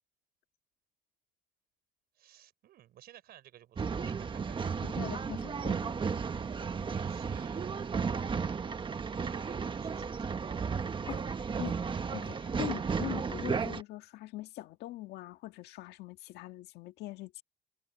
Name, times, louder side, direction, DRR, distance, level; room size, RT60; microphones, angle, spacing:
voice 1, 2.1-5.1 6.7-10.6, right 12 dB, 65° right, 5.3 m, -56 dB
Male speech man speaking / Chatter / Rattle, 3.8-13.8, right 5 dB, 30° right, 1.3 m, -34 dB
voice 2, 5.0-5.9 11.1-11.8 12.1-17.4, left 16 dB, 80° left, 1.6 m, -42 dB
cardioid pair, 110°, 17 cm